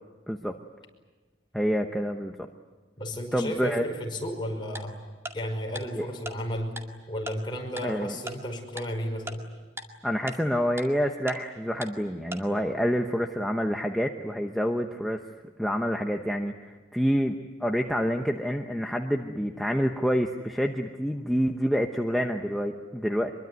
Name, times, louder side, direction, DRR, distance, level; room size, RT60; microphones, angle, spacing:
voice 1, 0.3-0.6 1.5-2.5 3.3-3.9 6.0-6.1 7.8-8.2 10.0-15.2 15.6-23.3, equal, ahead, 3 dB, 0.9 m, -27 dB
voice 2, 3.0-5.0 5.3-6.7 7.1-9.4, equal, 25° left, 1 dB, 5.6 m, -33 dB
Tick-tock, 4.8-4.9 5.3-5.4 5.8-5.9 6.3-6.4 6.8-6.9 7.3-7.4 7.8-7.9 8.3-8.4 8.8-8.9 9.3-9.4 9.8-9.9 10.3-10.4 10.8-10.9 11.3-11.4 11.8-11.9 12.3-12.4, right 1 dB, 15° right, 2.1 m, -36 dB
24.5 x 23.0 x 9.5 m, 1.3 s
head